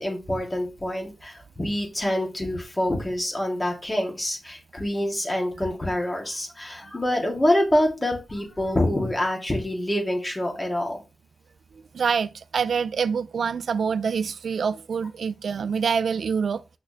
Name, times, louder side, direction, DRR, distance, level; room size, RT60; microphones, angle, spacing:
voice 1, 0.0-11.0, left 1 dB, 25° left, 3.0 m, -26 dB
voice 2, 11.9-16.6, right 6 dB, 80° right, 0.3 m, -26 dB
6.7 x 5.8 x 3.3 m
cardioid pair, 40°, 0 cm